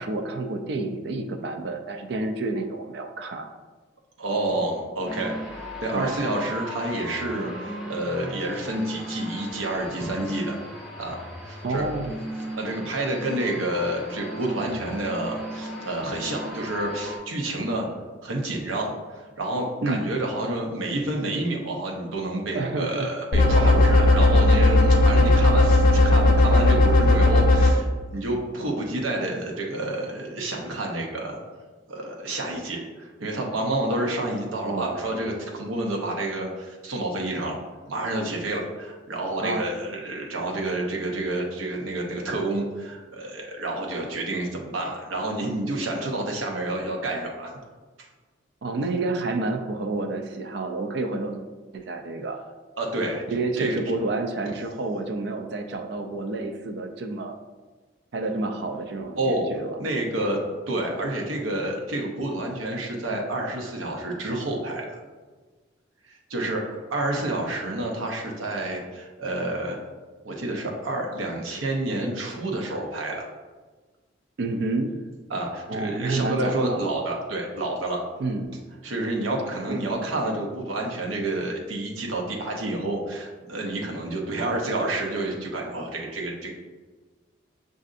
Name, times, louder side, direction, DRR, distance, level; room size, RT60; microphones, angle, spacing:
voice 1, 0.0-3.5 5.9-6.3 11.6-12.2 19.8-20.1 22.5-23.1 34.6-35.3 39.4-39.7 48.6-51.4 51.7-52.4 53.3-57.4 58.1-59.8 74.4-74.9 75.7-76.9 78.2-78.6 79.7-79.8, right 2 dB, 55° right, 5 dB, 0.4 m, -29 dB
voice 2, 4.2-10.6 11.0-11.8 12.6-17.9 18.2-31.4 31.9-37.6 37.9-47.5 48.0-48.1 52.8-53.2 53.6-53.8 59.2-59.4 59.8-60.4 60.7-65.0 66.3-69.8 70.2-73.2 75.3-78.0 78.8-86.5, right 1 dB, 85° right, 0 dB, 0.7 m, -29 dB
sound 1, 5.1-17.2, equal, 5° right, 0.6 m, -36 dB
sound 2, 23.3-27.7, left 2 dB, 45° left, 0.4 m, -17 dB
6.3 x 2.5 x 2.5 m, 1.3 s
head